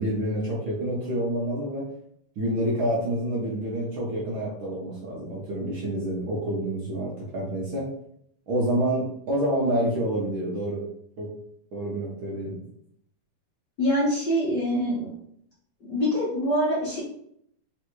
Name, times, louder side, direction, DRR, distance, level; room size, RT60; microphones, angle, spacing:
voice 1, 0.0-1.8 2.4-7.9 8.5-10.8 11.2-11.3 11.7-12.6, right 1 dB, 70° right, -5 dB, 1.2 m, -28 dB
voice 2, 13.8-15.1 15.8-17.0, equal, 55° left, -7 dB, 1.2 m, -24 dB
4.7 x 3.1 x 3.1 m, 0.70 s
omnidirectional pair, 3.4 m